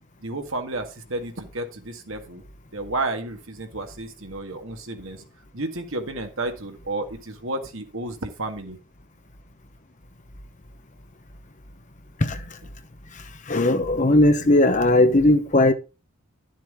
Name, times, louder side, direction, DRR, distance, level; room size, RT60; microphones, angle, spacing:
voice 1, 0.2-2.4 2.7-5.2 5.5-8.8, right 2 dB, 60° right, 1.8 m, -31 dB
voice 2, 13.5-15.7, left 1 dB, 35° left, 0.9 m, -18 dB
11.0 x 7.5 x 3.7 m
head